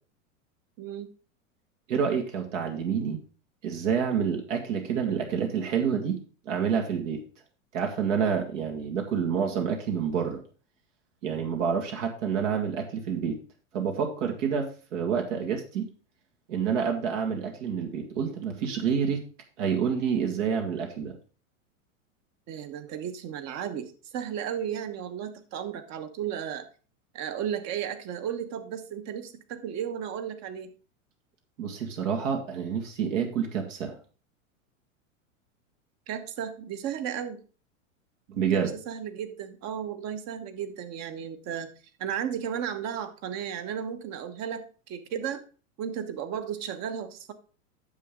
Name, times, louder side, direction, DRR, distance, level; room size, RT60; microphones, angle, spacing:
voice 1, 0.8-1.1 22.5-26.7 27.1-30.7 36.1-37.4 38.5-41.7 42.0-45.4 45.8-47.3, right 9 dB, 40° right, 9 dB, 1.3 m, -34 dB
voice 2, 1.9-3.2 3.6-6.2 6.5-7.2 7.7-10.4 11.2-13.4 13.7-15.9 16.5-19.2 19.6-21.2 31.6-34.0 38.3-38.7, right 7 dB, 65° right, 3 dB, 2.0 m, -28 dB
9.5 x 7.0 x 3.7 m, 0.36 s
hypercardioid pair, 110°, 40 cm